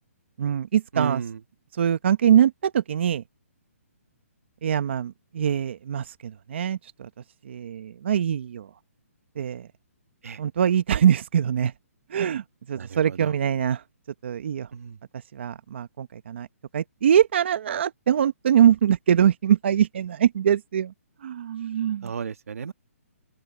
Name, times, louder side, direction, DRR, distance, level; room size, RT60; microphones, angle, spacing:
voice 1, 0.4-1.2 1.8-3.2 4.6-7.1 7.4-8.7 9.4-9.7 10.4-11.7 12.1-13.8 14.2-14.7 15.3-16.5 16.7-20.9 21.2-22.1, right 9 dB, 50° right, 1.0 m, -23 dB
voice 2, 0.9-1.4 10.2-10.4 12.8-13.3 14.7-15.0 22.0-22.7, right 6 dB, 70° right, 1.5 m, -33 dB
open air
hypercardioid pair, 165°, 8 cm